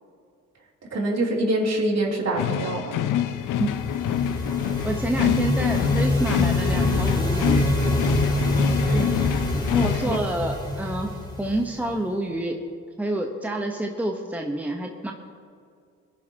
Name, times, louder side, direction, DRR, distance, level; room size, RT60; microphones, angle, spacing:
voice 1, 0.9-3.0 8.9-9.2 9.8-10.2, right 1 dB, 50° right, -3 dB, 3.5 m, -25 dB
sound 1, 2.3-10.2, left 11 dB, 65° left, 0.7 m, -26 dB
sound 2, 3.3-12.0, left 1 dB, 10° left, 2.8 m, -25 dB
voice 2, 4.8-7.6 9.5-12.6 13.0-15.1, right 1 dB, 5° right, 2 dB, 1.2 m, -28 dB
21.0 x 10.5 x 3.0 m, 2.2 s
supercardioid pair, 60°, 34 cm